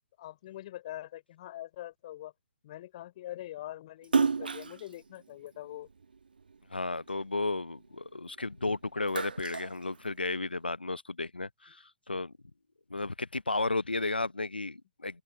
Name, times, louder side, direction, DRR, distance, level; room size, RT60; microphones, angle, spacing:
voice 1, 0.2-2.3 2.6-5.9, left 14 dB, 40° left, 3.6 m, -43 dB
Splash splatter, 4.0-6.6 7.1-8.5 8.8-10.6, right 5 dB, 70° right, 1.2 m, -32 dB
voice 2, 6.7-12.3 12.9-15.2, left 3 dB, 80° left, 0.8 m, -33 dB
open air
figure-of-eight pair, 120°, 5 cm